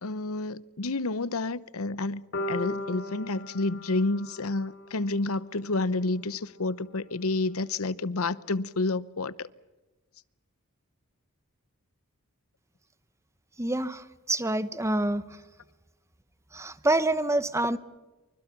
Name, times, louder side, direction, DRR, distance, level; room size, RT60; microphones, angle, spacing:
voice 1, 0.0-9.5, left 2 dB, 70° left, 0.9 m, -30 dB
sound 1, 2.3-6.4, left 1 dB, 55° left, 2.7 m, -38 dB
voice 2, 13.6-15.3 16.5-17.8, right 1 dB, 15° right, 1.0 m, -27 dB
28.5 x 24.5 x 6.0 m
head